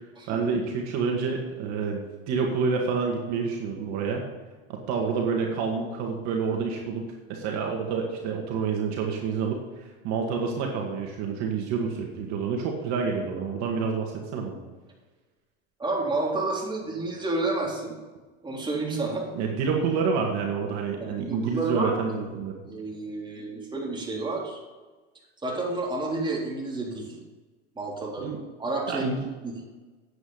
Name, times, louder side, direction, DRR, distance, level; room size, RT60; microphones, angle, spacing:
voice 1, 0.3-4.2 4.7-7.0 7.3-9.6 10.0-14.6 19.3-22.6 28.2-28.4 28.9-29.3, right 5 dB, 60° right, 1 dB, 2.1 m, -28 dB
voice 2, 15.8-17.9 18.4-19.3 21.0-22.2 22.7-24.6 25.4-27.2 27.8-29.1 29.4-29.6, right 3 dB, 15° right, -3 dB, 3.7 m, -30 dB
9.9 x 8.3 x 5.7 m, 1.3 s
supercardioid pair, 105°, 31 cm